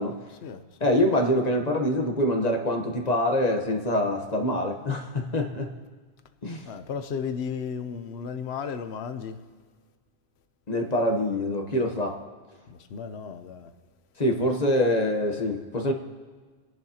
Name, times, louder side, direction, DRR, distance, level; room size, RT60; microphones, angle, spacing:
voice 1, 0.3-0.9 6.7-9.4 12.7-13.7, left 6 dB, 75° left, 1.0 m, -34 dB
voice 2, 0.8-5.7 6.4-6.6 10.7-12.2 14.2-15.9, left 1 dB, 40° left, 1.1 m, -25 dB
30.0 x 11.0 x 2.8 m
omnidirectional pair, 1.1 m